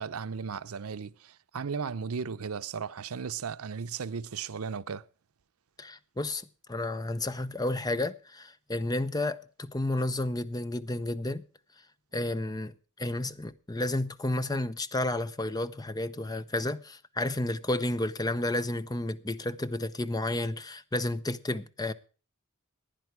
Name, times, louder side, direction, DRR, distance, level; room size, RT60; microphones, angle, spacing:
voice 1, 0.0-5.0, right 6 dB, 90° right, 0.6 m, -36 dB
voice 2, 5.8-11.4 12.1-21.9, left 2 dB, 20° left, 0.7 m, -31 dB
15.0 x 10.5 x 4.7 m
head